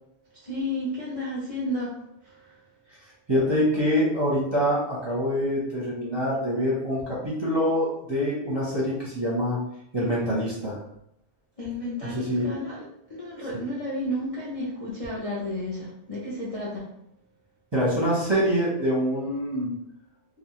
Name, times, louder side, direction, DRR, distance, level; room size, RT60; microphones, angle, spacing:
voice 1, 0.4-2.0 2.2-2.5 11.6-16.8, left 1 dB, 40° left, -8 dB, 0.5 m, -32 dB
voice 2, 3.3-9.6 9.9-10.8 12.0-12.5 17.7-19.7, equal, 25° right, -7 dB, 0.7 m, -25 dB
2.3 x 2.3 x 3.0 m, 0.76 s
omnidirectional pair, 1.1 m